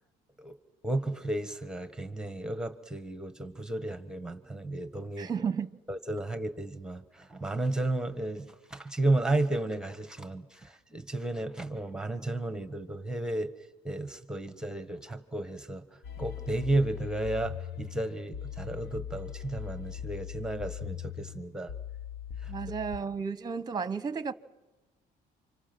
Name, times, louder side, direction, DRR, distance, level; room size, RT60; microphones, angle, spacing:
voice 1, 0.8-5.3 5.9-13.5 13.8-15.8 16.2-21.7 22.4-22.5, right 2 dB, 5° right, 1.5 m, -33 dB
voice 2, 5.2-5.7 22.5-24.3, right 6 dB, 25° right, 1.0 m, -33 dB
sound 1, 16.0-23.0, left 10 dB, 70° left, 1.2 m, -40 dB
29.0 x 26.5 x 6.2 m
cardioid pair, 110°, 17 cm